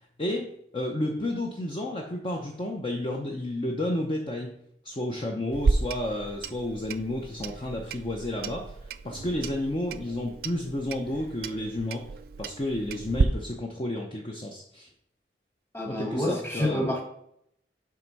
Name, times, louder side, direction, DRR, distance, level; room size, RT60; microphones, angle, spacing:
voice 1, 0.2-4.5 4.8-8.8 9.0-12.1 12.4-14.9 15.9-16.9, left 1 dB, 30° left, 0 dB, 0.7 m, -31 dB
Clock, 5.5-13.2, right 4 dB, 55° right, 0.3 m, -32 dB
voice 2, 15.7-17.0, left 1 dB, 15° left, 2 dB, 1.3 m, -28 dB
7.7 x 3.4 x 5.3 m, 0.72 s
head